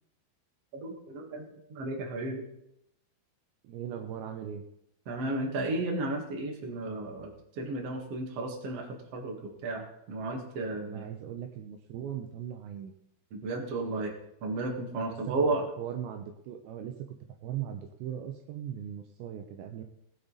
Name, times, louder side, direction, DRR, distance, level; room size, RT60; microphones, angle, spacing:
voice 1, 0.7-2.4 5.1-11.1 13.3-14.1 14.4-15.6, right 2 dB, 50° right, 2 dB, 1.9 m, -33 dB
voice 2, 3.6-4.6 10.8-12.9 15.1-15.3 15.8-16.9 17.4-19.8, right 10 dB, 80° right, 5 dB, 2.7 m, -39 dB
18.5 x 8.0 x 4.0 m, 0.78 s
omnidirectional pair, 5.5 m